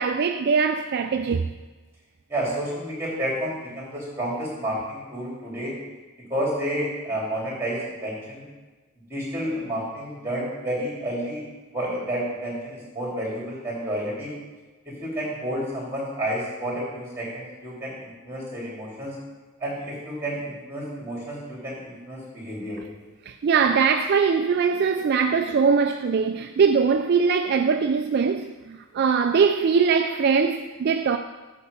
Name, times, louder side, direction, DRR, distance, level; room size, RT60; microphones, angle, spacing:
voice 1, 0.0-1.5 23.3-31.2, right 5 dB, 50° right, 0.3 m, -21 dB
voice 2, 2.3-5.7 6.3-8.4 9.1-11.4 11.7-14.3 14.8-19.1 19.6-22.8, right 1 dB, 10° right, 3.3 m, -30 dB
8.5 x 5.0 x 6.9 m
head